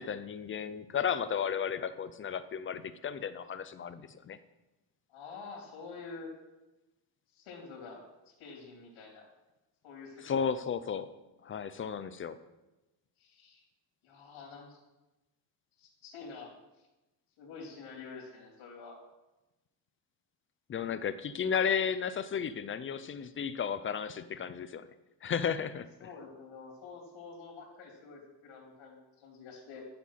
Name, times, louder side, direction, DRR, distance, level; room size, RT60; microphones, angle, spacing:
voice 1, 0.0-4.4 10.2-11.1 11.4-12.4 20.7-24.9 25.2-26.1, left 7 dB, 30° left, 12 dB, 0.4 m, -34 dB
voice 2, 5.1-6.3 7.3-9.3 9.8-10.5 13.2-13.6 14.0-14.8 15.8-16.5 17.4-19.0 26.0-29.9, left 4 dB, 90° left, -3 dB, 3.5 m, -48 dB
12.0 x 7.4 x 5.7 m, 1.0 s
cardioid pair, 175°, 46 cm